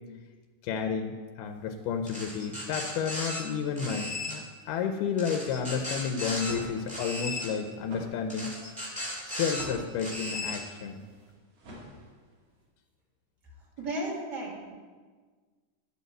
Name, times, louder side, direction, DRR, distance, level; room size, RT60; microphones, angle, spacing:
voice 1, 0.6-8.5 9.3-11.0, left 6 dB, 90° left, 6 dB, 2.2 m, -31 dB
sound 1, 2.1-3.4 3.8-4.4 5.2-6.5 6.9-7.5 8.3-9.6 10.0-10.6, left 1 dB, 5° right, 1.2 m, -36 dB
sound 2, 6.3-12.5, right 1 dB, 55° right, 3.0 m, -47 dB
voice 2, 13.8-14.7, right 1 dB, 35° right, -3 dB, 2.3 m, -34 dB
10.0 x 5.5 x 7.7 m, 1.5 s
omnidirectional pair, 3.7 m